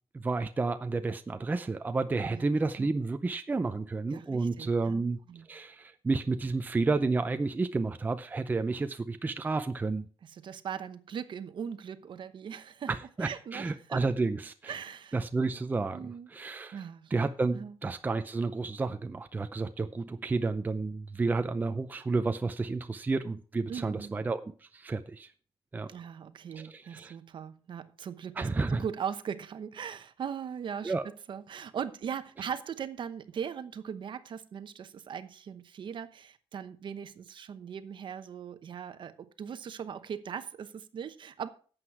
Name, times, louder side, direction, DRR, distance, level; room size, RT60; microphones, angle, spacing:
voice 1, 0.2-5.2 5.5-10.0 12.9-14.7 15.1-16.8 17.1-25.3 25.7-25.9 26.5-27.2 28.4-28.9 30.8-31.1, right 3 dB, 20° right, 9 dB, 0.5 m, -31 dB
voice 2, 2.3-3.0 4.1-5.0 5.3-5.5 10.2-12.9 13.2-14.0 14.7-15.2 15.9-16.3 16.7-17.1 17.5-17.7 23.7-24.1 25.9-30.9 31.3-41.5, right 7 dB, 55° right, 12 dB, 0.9 m, -39 dB
11.5 x 8.1 x 4.7 m, 0.40 s
wide cardioid pair, 150°, 10 cm